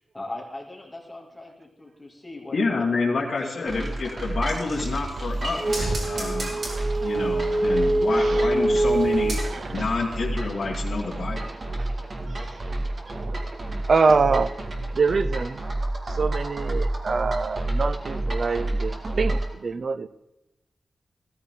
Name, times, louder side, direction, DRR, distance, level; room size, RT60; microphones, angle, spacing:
voice 1, 0.1-4.3, left 2 dB, 15° left, -1 dB, 2.7 m, -40 dB
voice 2, 2.5-9.4 9.7-11.4, left 4 dB, 55° left, -5 dB, 2.2 m, -28 dB
sound 1, 3.7-19.5, right 2 dB, 40° right, 2.0 m, -30 dB
sound 2, 4.7-9.9 10.2-10.3, right 2 dB, 75° right, 4.2 m, -25 dB
voice 3, 7.5-8.6 9.4-9.9 11.5-11.9 12.3-13.5 13.9-14.5 14.9-15.7 16.1-20.1, right 4 dB, 55° right, 14 dB, 0.6 m, -26 dB
16.5 x 14.0 x 3.9 m, 0.92 s
wide cardioid pair, 140°, 0 cm